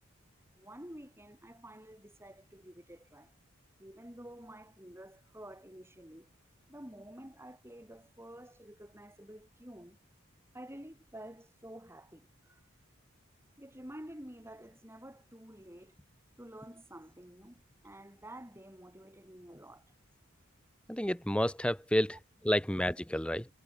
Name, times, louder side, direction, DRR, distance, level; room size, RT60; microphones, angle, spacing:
voice 1, 0.5-3.3 3.8-6.3 6.7-10.0 10.5-12.6 13.6-16.1 16.4-20.0 22.1-22.2, right 1 dB, 10° right, 7.9 m, -50 dB
voice 2, 20.9-22.2 22.4-23.5, equal, 5° left, 2.0 m, -30 dB
head